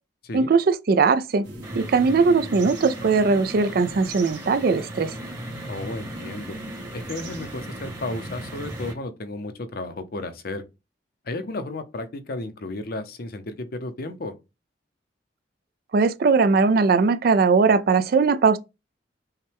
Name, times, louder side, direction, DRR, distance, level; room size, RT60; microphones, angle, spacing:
voice 1, 0.3-1.5 1.7-5.1 15.9-18.6, right 4 dB, 55° right, 0.4 m, -19 dB
sound 1, 1.4-8.9, equal, 75° right, 1.5 m, -37 dB
sound 2, 1.6-8.9, right 2 dB, 15° right, 1.0 m, -42 dB
voice 2, 5.6-6.6 6.9-10.6 11.3-14.3, left 2 dB, 55° left, 0.6 m, -33 dB
5.5 x 2.2 x 3.4 m
head